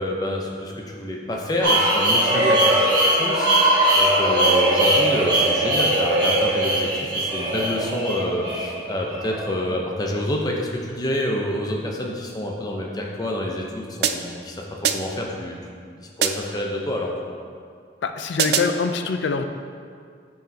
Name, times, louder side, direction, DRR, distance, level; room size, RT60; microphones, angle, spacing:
voice 1, 0.0-2.9 3.1-14.6 14.9-15.6 15.9-17.2, left 1 dB, 20° left, -1 dB, 0.6 m, -28 dB
sound 1, 1.6-9.5, right 1 dB, 25° right, 1.3 m, -20 dB
sound 2, 14.0-14.5 14.8-15.3 16.2-16.6 18.4-18.9, right 7 dB, 60° right, 0.3 m, -24 dB
voice 2, 18.0-19.5, left 4 dB, 80° left, 7 dB, 0.4 m, -24 dB
9.2 x 4.7 x 2.7 m, 2.1 s
head